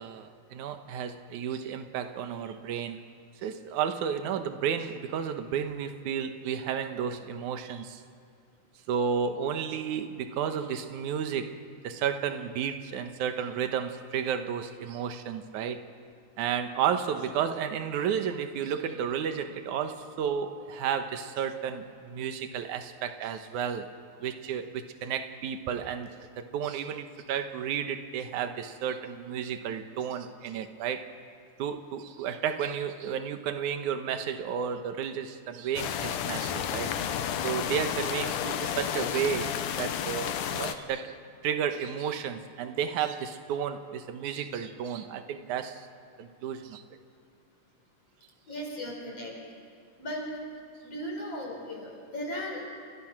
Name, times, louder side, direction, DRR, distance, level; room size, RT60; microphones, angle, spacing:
voice 1, 0.0-3.1 3.4-8.0 8.9-15.8 16.4-23.9 24.2-31.1 31.6-36.9 37.4-41.2 41.4-45.9 46.2-46.8, right 8 dB, 75° right, 7 dB, 2.6 m, -32 dB
sound 1, 35.8-40.8, left 9 dB, 80° left, 2.6 m, -31 dB
voice 2, 48.5-49.3 50.0-50.3 50.8-52.7, equal, 50° left, 0 dB, 5.8 m, -36 dB
30.0 x 29.5 x 6.2 m, 2.3 s
omnidirectional pair, 3.6 m